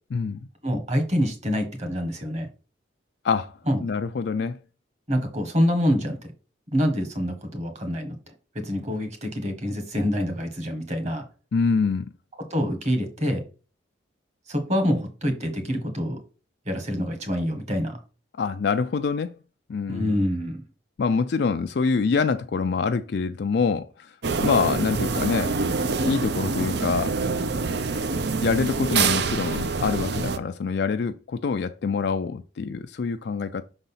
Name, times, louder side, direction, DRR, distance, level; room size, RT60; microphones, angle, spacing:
voice 1, 0.6-2.5 3.7-3.8 5.1-6.2 6.7-8.1 8.5-11.2 12.4-13.4 14.5-16.2 16.7-18.0 19.9-20.6, equal, 35° right, 1.6 m, -26 dB
voice 2, 3.2-4.6 11.5-12.0 18.4-19.3 19.7-20.1 21.0-24.1 24.4-25.6 26.0-27.2 28.4-33.6, left 5 dB, 55° left, 0.3 m, -25 dB
sound 1, 24.2-30.4, right 4 dB, 55° right, 0.6 m, -26 dB
6.3 x 4.0 x 5.6 m
head